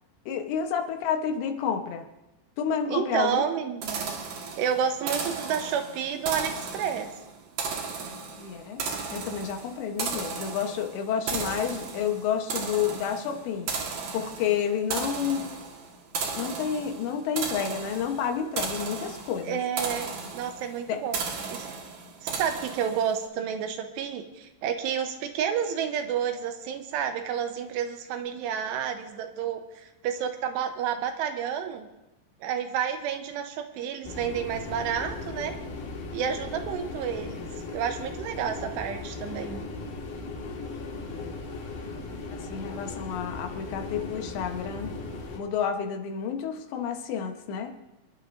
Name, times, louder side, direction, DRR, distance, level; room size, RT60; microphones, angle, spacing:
voice 1, 0.3-2.0 2.6-3.4 8.4-8.8 9.1-13.7 14.1-15.5 16.4-19.6 20.9-21.0 42.5-44.9 45.4-47.7, left 7 dB, 80° left, 5 dB, 3.2 m, -30 dB
voice 2, 2.9-4.1 4.6-7.1 19.4-21.2 21.5-21.7 22.2-31.9 32.4-35.6 36.1-39.6, right 8 dB, 80° right, 6 dB, 2.9 m, -30 dB
sound 1, 3.8-23.2, right 5 dB, 60° right, 2.8 m, -35 dB
sound 2, 34.0-45.4, left 3 dB, 65° left, 3.5 m, -37 dB
27.0 x 11.5 x 2.6 m, 0.95 s
omnidirectional pair, 5.1 m